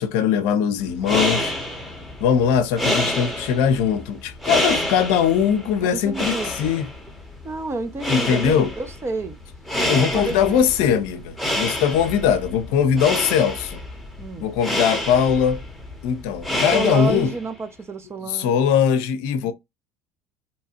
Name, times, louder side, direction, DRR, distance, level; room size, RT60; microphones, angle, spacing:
voice 1, 0.0-1.5 2.2-6.9 8.1-8.7 9.9-13.8 14.4-15.6 16.0-17.3 18.2-19.5, left 8 dB, 70° left, 0.5 m, -21 dB
sound 1, 0.8-17.5, left 1 dB, ahead, 0.9 m, -28 dB
voice 2, 5.9-6.5 7.4-9.4 9.9-10.6 14.2-14.5 16.7-18.6 19.4-19.5, right 3 dB, 25° right, 0.6 m, -29 dB
2.8 x 2.3 x 2.8 m
hypercardioid pair, 80°, 10 cm